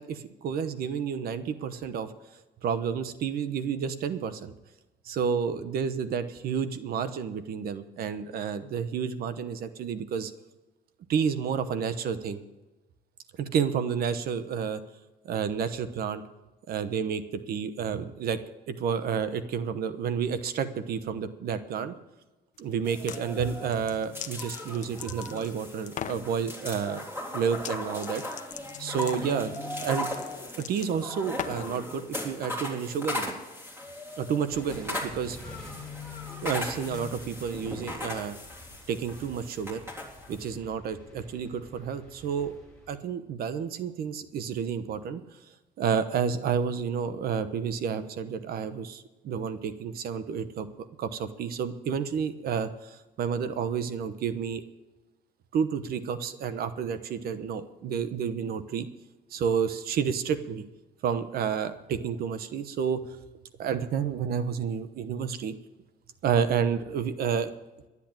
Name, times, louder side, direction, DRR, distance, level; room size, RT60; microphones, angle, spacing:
voice 1, 0.0-2.1 2.6-4.5 5.0-10.3 11.1-12.4 13.4-14.8 15.2-16.2 16.7-18.4 18.7-21.9 22.6-27.0 27.3-28.2 28.8-29.5 29.8-30.1 30.6-33.3 34.2-35.4 36.4-38.4 38.9-39.8 40.3-42.5 42.9-45.2 45.8-54.7 55.5-58.9 59.3-60.6 61.0-63.0 63.6-65.5 66.2-67.5, right 7 dB, 65° right, 12 dB, 1.0 m, -30 dB
sound 1, 22.8-23.2 23.7-25.5 25.9-26.2 27.5-27.8 28.0-31.8, left 9 dB, 45° left, 0.8 m, -39 dB
sound 2, 22.8-40.5, left 1 dB, 15° right, 3.5 m, -38 dB
sound 3, 34.5-43.0, equal, 5° left, 3.4 m, -49 dB
12.0 x 8.4 x 8.9 m, 1.1 s
cardioid pair, 110°, 17 cm